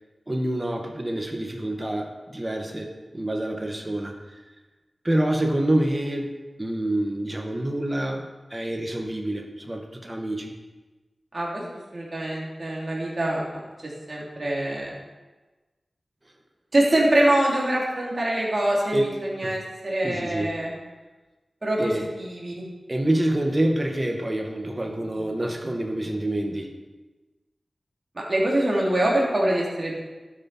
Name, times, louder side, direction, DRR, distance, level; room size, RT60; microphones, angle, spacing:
voice 1, 0.3-4.1 5.0-6.3 6.6-10.5 18.9-19.0 19.4-19.6 20.0-20.5 21.8-22.1 22.9-26.7, right 1 dB, 25° right, 2 dB, 1.8 m, -27 dB
voice 2, 11.9-13.5 14.1-15.0 16.7-20.7 21.6-21.9 22.2-22.6 28.2-30.0, right 1 dB, 45° right, -4 dB, 3.8 m, -24 dB
12.5 x 9.6 x 4.6 m, 1.2 s
wide cardioid pair, 65°, 0 cm